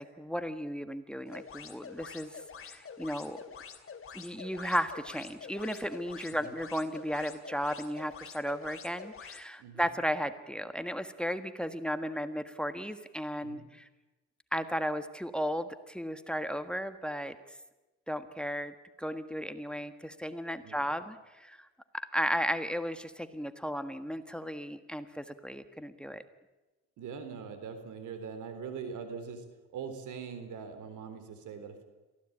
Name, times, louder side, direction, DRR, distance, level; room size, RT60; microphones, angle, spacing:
voice 1, 0.0-3.4 4.1-13.8 14.5-17.3 18.1-21.7 21.9-26.2, equal, 5° left, 10 dB, 1.4 m, -35 dB
sound 1, 1.3-9.4, left 6 dB, 45° left, 2.5 m, -47 dB
voice 2, 9.6-9.9 13.4-13.7 20.6-20.8 27.0-29.4 29.7-31.8, right 6 dB, 85° right, 9 dB, 3.8 m, -42 dB
23.0 x 16.0 x 8.8 m, 1.1 s
cardioid pair, 90°, 30 cm